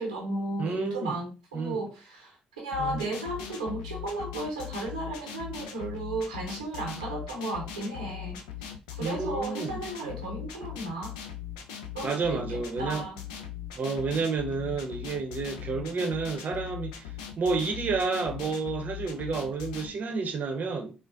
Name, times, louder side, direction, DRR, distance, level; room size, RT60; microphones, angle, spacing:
voice 1, 0.0-8.4 8.9-11.1 11.9-13.2, right 2 dB, 90° right, 0.7 m, -34 dB
voice 2, 0.6-1.2 1.5-1.8 2.8-3.1 9.0-9.8 12.0-13.0 13.8-17.1 17.4-20.9, right 4 dB, 45° right, 0.7 m, -30 dB
sound 1, 2.7-19.9, left 9 dB, 80° left, 0.4 m, -40 dB
3.9 x 2.1 x 2.4 m
hypercardioid pair, 45°, 4 cm